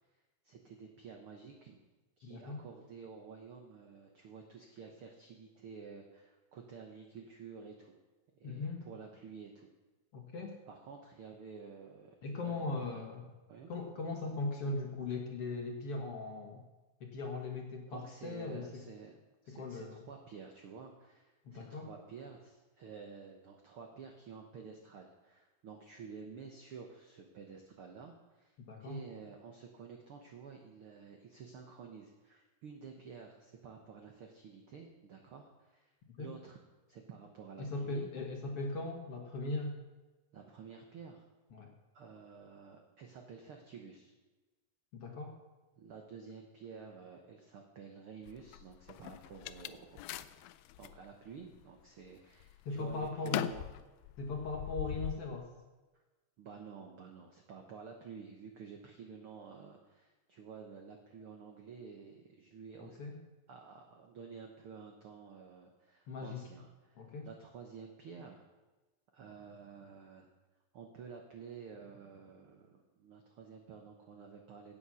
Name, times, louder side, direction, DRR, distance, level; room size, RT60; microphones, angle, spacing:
voice 1, 0.4-1.8 2.2-8.0 8.3-9.7 10.7-13.1 13.5-13.7 17.9-19.1 19.4-28.5 28.8-35.9 36.2-36.6 36.9-38.1 40.3-41.3 41.9-44.1 45.8-53.7 56.4-63.0 63.5-68.5 69.1-70.3 70.7-74.8, right 5 dB, 85° right, 3 dB, 1.2 m, -51 dB
voice 2, 2.3-2.6 8.4-8.8 10.1-10.6 12.2-13.3 13.7-16.6 17.0-18.8 19.5-20.0 21.5-21.9 28.6-29.0 36.2-36.3 37.6-39.8 41.5-41.7 44.9-45.4 52.7-53.5 54.2-55.5 62.8-63.2 66.1-66.4 67.0-67.3, left 3 dB, 55° left, 2 dB, 1.8 m, -39 dB
sound 1, 48.3-51.0 51.5-52.1 52.4-55.2, left 15 dB, 90° left, 2.3 m, -41 dB
16.5 x 7.2 x 6.2 m, 1.2 s
omnidirectional pair, 4.1 m